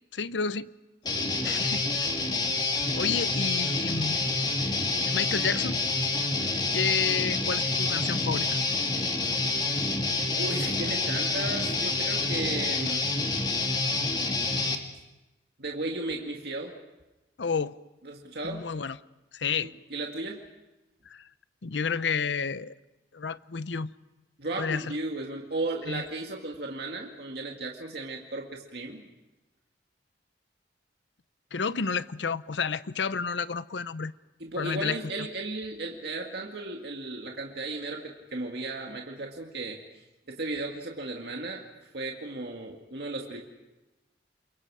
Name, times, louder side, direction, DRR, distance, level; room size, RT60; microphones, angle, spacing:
voice 1, 0.1-0.7 1.4-2.1 2.9-4.2 5.0-5.8 6.7-8.6 17.4-17.8 18.4-19.0 19.3-19.7 21.1-21.3 21.6-22.7 23.1-23.9 24.6-25.0 25.9-26.0 31.5-34.1 34.6-35.3, left 5 dB, 85° left, 0.7 m, -30 dB
Guitar, 1.0-14.7, left 3 dB, 25° left, 1.9 m, -28 dB
voice 2, 10.3-13.1 15.6-16.8 18.0-18.7 19.5-20.4 24.4-29.0 34.4-39.8 40.3-41.6 41.9-43.4, right 2 dB, 65° right, 2.1 m, -35 dB
29.0 x 23.0 x 4.9 m
head